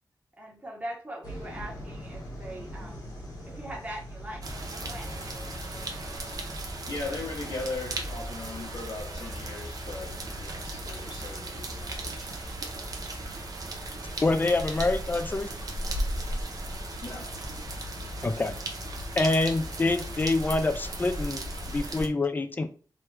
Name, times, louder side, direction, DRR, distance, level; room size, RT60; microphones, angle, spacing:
voice 1, 0.4-3.0 3.4-4.4 4.7-5.1, right 1 dB, 20° right, 0.9 m, -41 dB
sound 1, 1.2-19.3, equal, 65° left, 1.4 m, -44 dB
sound 2, 4.4-22.1, right 1 dB, 55° right, 0.5 m, -36 dB
voice 2, 6.9-12.4 17.0-17.5, left 3 dB, 85° left, 0.9 m, -39 dB
voice 3, 14.2-15.5 18.2-18.6 19.2-22.7, left 2 dB, 25° left, 0.3 m, -26 dB
3.0 x 2.3 x 3.2 m
wide cardioid pair, 135°, 7 cm